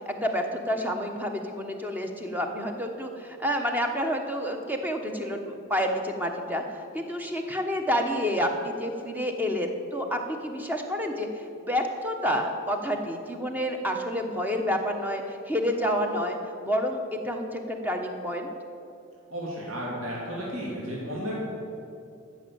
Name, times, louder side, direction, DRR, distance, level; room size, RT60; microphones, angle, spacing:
voice 1, 0.1-16.4 16.6-18.5, equal, 10° right, 3 dB, 1.0 m, -29 dB
voice 2, 19.3-21.4, equal, 65° right, -5 dB, 3.0 m, -33 dB
14.0 x 6.5 x 8.6 m, 2.6 s
head